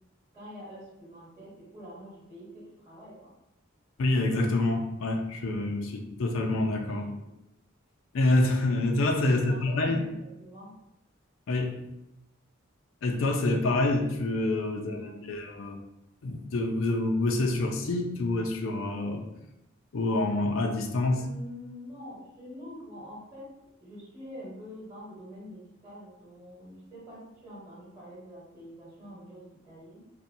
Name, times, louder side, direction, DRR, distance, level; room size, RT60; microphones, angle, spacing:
voice 1, 0.3-3.3 6.8-7.0 9.2-10.7 14.7-15.3 21.0-23.5 23.8-30.0, equal, 15° right, -8 dB, 1.1 m, -46 dB
voice 2, 4.0-7.1 8.1-10.0 11.5-11.8 13.0-15.8 16.2-19.3 19.9-21.2, left 2 dB, 75° left, 3 dB, 0.4 m, -27 dB
4.1 x 2.2 x 2.6 m, 0.88 s
head